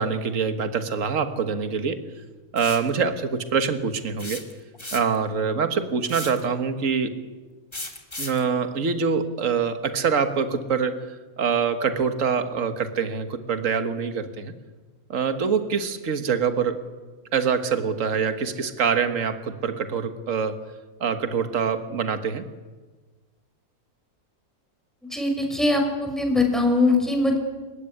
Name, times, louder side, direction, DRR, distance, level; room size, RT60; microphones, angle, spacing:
voice 1, 0.0-2.1 2.5-4.4 4.9-7.2 8.2-14.5 15.1-16.8 17.3-20.7 21.0-22.5, right 6 dB, 60° right, 8 dB, 1.9 m, -25 dB
sound 1, 2.6-2.9 4.2-5.3 6.1-6.4 7.7-8.4, left 1 dB, 20° left, 2.7 m, -35 dB
voice 2, 25.1-27.4, left 2 dB, ahead, 3 dB, 5.5 m, -21 dB
28.5 x 16.0 x 10.0 m, 1.3 s
omnidirectional pair, 1.6 m